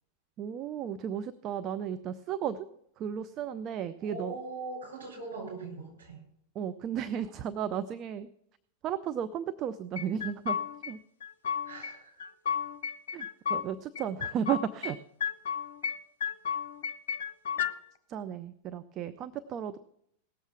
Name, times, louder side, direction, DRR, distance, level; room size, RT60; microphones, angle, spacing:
voice 1, 0.4-2.7 3.0-4.3 6.5-8.3 8.8-10.6 10.9-11.0 13.1-15.0 18.1-19.8, right 9 dB, 35° right, 13 dB, 0.5 m, -34 dB
voice 2, 4.0-6.2 11.6-12.2, right 3 dB, 70° right, 0 dB, 6.3 m, -41 dB
sound 1, 10.0-10.9 11.2-11.9 12.2-13.7 14.0-14.9 15.2-17.7, left 7 dB, 60° left, 0.7 m, -33 dB
18.0 x 7.3 x 6.1 m, 0.72 s
figure-of-eight pair, 90°, 0 cm